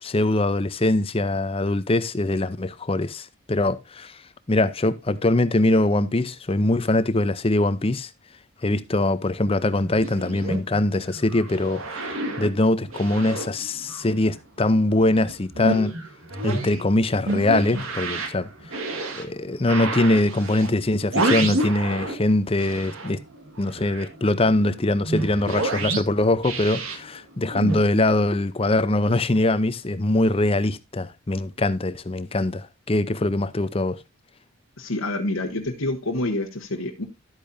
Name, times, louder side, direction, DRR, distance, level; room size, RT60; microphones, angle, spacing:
voice 1, 0.0-4.2 4.5-8.1 8.6-15.9 16.4-18.5 19.2-23.2 23.6-34.0, left 2 dB, 25° left, 0.6 m, -22 dB
sound 1, 9.7-14.4 14.7-22.3 22.6-27.8, right 2 dB, 80° right, 1.9 m, -30 dB
voice 2, 34.8-37.1, left 2 dB, 80° left, 1.3 m, -27 dB
12.0 x 8.5 x 2.6 m
head